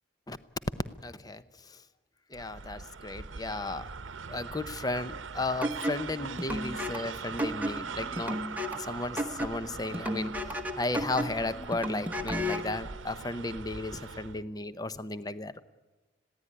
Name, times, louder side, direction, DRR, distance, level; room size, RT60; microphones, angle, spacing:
voice 1, 1.0-1.8 2.3-3.9 4.3-8.4 8.7-15.6, left 2 dB, 20° left, 14 dB, 0.7 m, -35 dB
sound 1, 2.3-14.4, right 5 dB, 90° right, 0.8 m, -41 dB
sound 2, 5.6-12.7, equal, 10° right, 1.1 m, -34 dB
21.0 x 16.0 x 9.8 m, 1.2 s
head